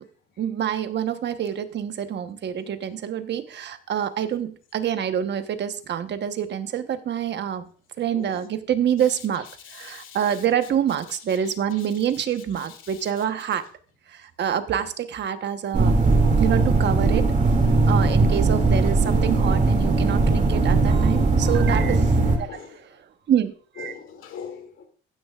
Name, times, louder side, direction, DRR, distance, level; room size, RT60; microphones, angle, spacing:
voice 1, 0.4-7.7 8.0-13.7 14.1-16.0 16.4-17.3 17.9-23.9, right 9 dB, 60° right, 1.1 m, -27 dB
voice 2, 9.6-10.4 11.4-11.9 12.8-13.0 17.8-18.4 21.8-22.1 22.4-22.8 23.8-24.9, left 7 dB, 80° left, 2.5 m, -42 dB
sound 1, 15.7-22.4, right 3 dB, 40° right, 2.5 m, -19 dB
15.0 x 10.0 x 2.4 m
cardioid pair, 90°, 20 cm